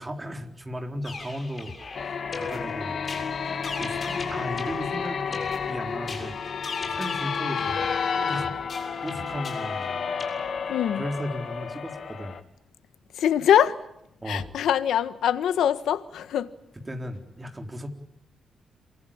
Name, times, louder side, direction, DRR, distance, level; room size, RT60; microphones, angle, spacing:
voice 1, 0.0-1.7 2.0-3.1 3.8-5.4 5.7-6.4 6.9-7.9 8.2-10.0 10.5-10.6 10.9-12.4 14.2-14.6 16.9-17.9, equal, 15° right, 3.9 m, -36 dB
sound 1, 1.0-10.3, left 4 dB, 30° left, 6.9 m, -39 dB
sound 2, 1.9-12.4, left 6 dB, 45° left, 2.4 m, -31 dB
voice 2, 10.7-11.0 13.1-13.8 14.3-16.5, left 9 dB, 85° left, 1.5 m, -23 dB
28.0 x 24.0 x 8.7 m
wide cardioid pair, 170°, 0 cm